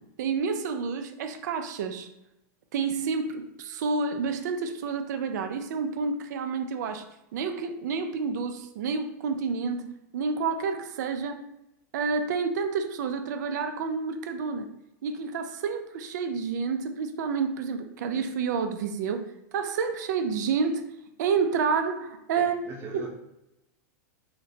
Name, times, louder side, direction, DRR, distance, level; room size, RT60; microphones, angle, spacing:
voice 1, 0.2-2.1 2.7-7.0 7.3-9.8 10.1-11.5 11.9-14.7 15.0-19.2 19.5-20.8 21.2-22.5 22.9-23.0, right 5 dB, 75° right, 7 dB, 0.4 m, -29 dB
voice 2, 22.4-23.1, right 4 dB, 25° right, -1 dB, 0.5 m, -41 dB
2.9 x 2.1 x 2.6 m, 0.87 s
supercardioid pair, 145°, 10 cm